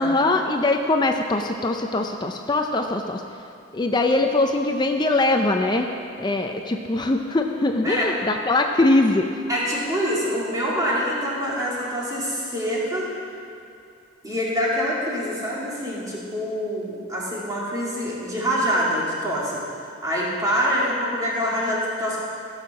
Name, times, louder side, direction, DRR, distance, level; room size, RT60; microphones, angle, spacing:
voice 1, 0.0-3.2 3.7-5.9 6.2-9.3, left 2 dB, 20° left, 4 dB, 0.5 m, -22 dB
voice 2, 9.5-13.1 14.2-19.6 20.0-22.2, equal, 20° right, -6 dB, 2.5 m, -25 dB
16.0 x 6.5 x 6.0 m, 2.5 s
head